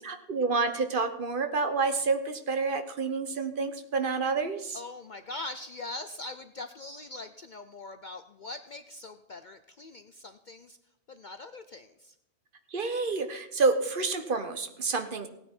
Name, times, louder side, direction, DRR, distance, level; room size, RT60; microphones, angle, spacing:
voice 1, 0.0-4.8 12.7-15.3, right 4 dB, 50° right, 8 dB, 1.0 m, -29 dB
voice 2, 4.7-10.8 11.1-12.1, left 2 dB, 50° left, 10 dB, 0.6 m, -42 dB
17.0 x 9.4 x 4.4 m, 0.87 s
omnidirectional pair, 1.3 m